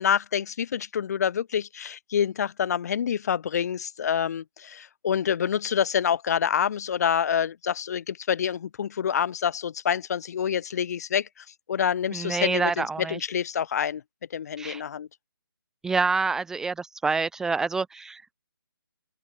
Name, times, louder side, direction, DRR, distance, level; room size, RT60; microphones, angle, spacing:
voice 1, 0.0-14.0 14.3-15.1, left 8 dB, 45° left, 2.4 m, -27 dB
voice 2, 12.1-13.2 14.6-14.8 15.8-18.4, right 4 dB, 5° right, 0.6 m, -27 dB
open air
figure-of-eight pair, 145°, 12 cm